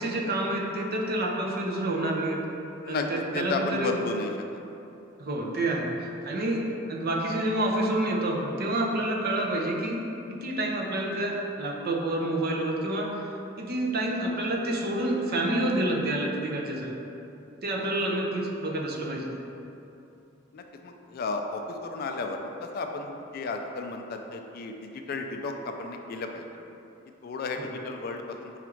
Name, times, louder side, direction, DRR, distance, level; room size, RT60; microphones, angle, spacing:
voice 1, 0.0-2.4 2.9-4.0 5.2-5.9 6.2-10.0 10.3-13.1 13.6-16.9 17.6-19.3 27.6-27.7, right 1 dB, 50° right, -1 dB, 0.5 m, -28 dB
voice 2, 3.3-4.3 6.7-6.8 17.7-17.9 20.5-26.5 27.2-28.6, left 3 dB, 50° left, 4 dB, 0.3 m, -33 dB
5.0 x 2.4 x 4.4 m, 2.8 s
head